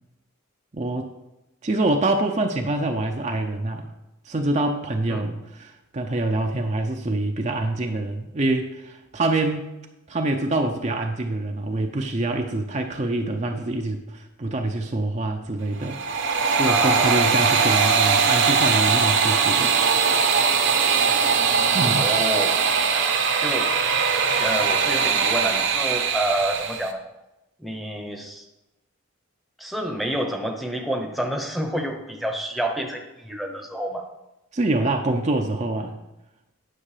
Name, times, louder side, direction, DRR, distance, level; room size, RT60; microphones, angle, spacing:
voice 1, 0.7-1.1 1.6-3.9 4.2-9.7 10.1-19.8 21.7-22.1 34.5-36.0, right 2 dB, 35° right, 3 dB, 0.6 m, -25 dB
sound 1, 15.8-26.9, right 5 dB, 55° right, 0.9 m, -21 dB
voice 2, 16.6-17.2 22.0-22.6 23.4-23.7 24.4-27.0 27.6-28.4 29.6-34.1, right 1 dB, ahead, 3 dB, 0.8 m, -28 dB
10.0 x 6.4 x 4.9 m, 0.96 s
head